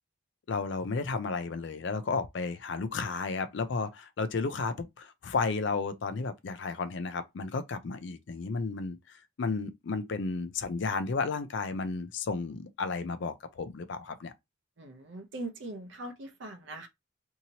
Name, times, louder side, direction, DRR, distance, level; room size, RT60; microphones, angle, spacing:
voice 1, 0.5-9.0 9.4-14.3, left 4 dB, 60° left, 0.4 m, -33 dB
voice 2, 14.8-16.9, right 2 dB, 60° right, 0.6 m, -41 dB
2.7 x 2.7 x 2.8 m
head